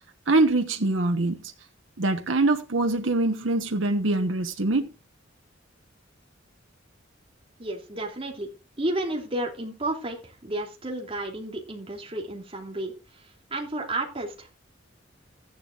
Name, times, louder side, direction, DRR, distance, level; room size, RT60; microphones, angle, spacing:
voice 1, 0.3-1.4 2.0-4.9, right 2 dB, 80° right, 1.2 m, -23 dB
voice 2, 7.6-8.5 8.8-14.5, right 1 dB, 30° right, 3.0 m, -32 dB
15.5 x 11.0 x 2.5 m
head